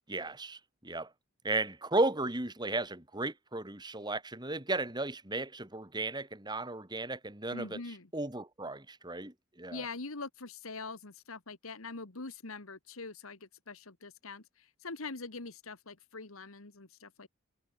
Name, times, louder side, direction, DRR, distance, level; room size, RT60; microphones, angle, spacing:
voice 1, 0.1-1.1 1.4-7.8 8.1-9.8, right 2 dB, 20° right, 2.5 m, -35 dB
voice 2, 7.5-8.1 9.7-17.3, left 3 dB, 70° left, 1.8 m, -43 dB
head